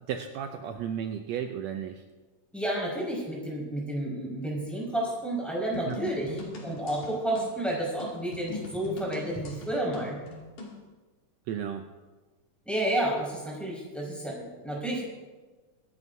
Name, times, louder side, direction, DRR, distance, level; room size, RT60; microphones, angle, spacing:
voice 1, 0.1-2.0 5.8-6.0 11.5-11.9, right 8 dB, 80° right, 5 dB, 1.5 m, -34 dB
voice 2, 2.5-6.3 6.6-10.2 12.6-15.0, right 1 dB, ahead, -5 dB, 4.9 m, -31 dB
sound 1, 5.7-10.8, left 3 dB, 60° left, 3.9 m, -41 dB
25.0 x 12.5 x 2.7 m, 1.3 s
omnidirectional pair, 3.8 m